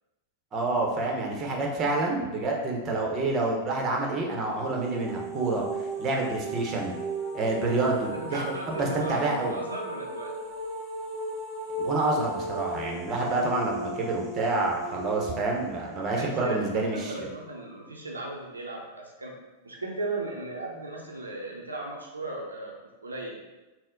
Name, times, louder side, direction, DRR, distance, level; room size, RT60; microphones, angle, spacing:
voice 1, 0.5-5.6 6.0-6.9 7.3-9.5 11.8-17.3, right 2 dB, 30° right, 0 dB, 0.9 m, -28 dB
sound 1, 4.5-17.3, right 2 dB, 10° left, 1.2 m, -36 dB
voice 2, 8.0-10.3 16.1-19.3 19.6-23.4, right 2 dB, 85° right, -1 dB, 0.6 m, -36 dB
4.1 x 2.1 x 3.8 m, 1.1 s
figure-of-eight pair, 95°, 0 cm